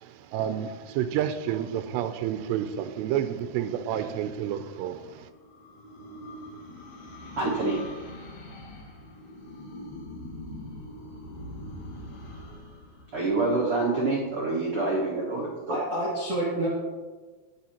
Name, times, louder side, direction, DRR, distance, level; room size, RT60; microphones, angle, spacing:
voice 1, 0.0-5.3, right 10 dB, 85° right, 10 dB, 2.7 m, -30 dB
sound 1, 4.6-14.2, left 1 dB, 60° left, 3.1 m, -43 dB
voice 2, 7.4-7.8 13.1-15.8, right 3 dB, 70° right, -5 dB, 1.3 m, -26 dB
voice 3, 15.7-16.7, right 1 dB, 30° right, -8 dB, 2.3 m, -28 dB
18.5 x 6.3 x 2.9 m, 1.4 s
omnidirectional pair, 4.9 m